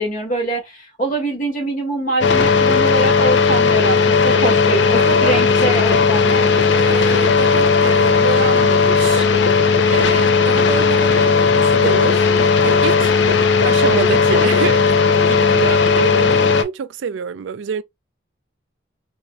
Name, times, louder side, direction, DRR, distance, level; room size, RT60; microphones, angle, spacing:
voice 1, 0.0-6.5, right 2 dB, 40° left, 1.7 m, -23 dB
sound 1, 2.2-16.6, left 5 dB, 65° left, 0.5 m, -15 dB
voice 2, 5.0-5.9 6.7-9.3 9.9-12.3 12.6-13.1 13.6-17.8, right 7 dB, 75° right, 0.4 m, -26 dB
4.1 x 2.6 x 2.2 m
head